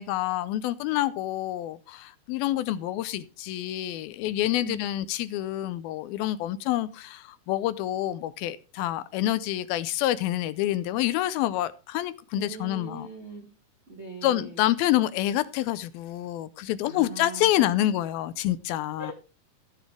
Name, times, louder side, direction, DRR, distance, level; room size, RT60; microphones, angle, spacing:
voice 1, 0.0-13.1 14.2-19.1, left 14 dB, 80° left, 2.4 m, -27 dB
voice 2, 12.3-13.5 13.9-14.6 16.8-17.8 19.0-19.1, right 4 dB, 30° right, 1.3 m, -40 dB
15.0 x 7.5 x 3.5 m
omnidirectional pair, 4.4 m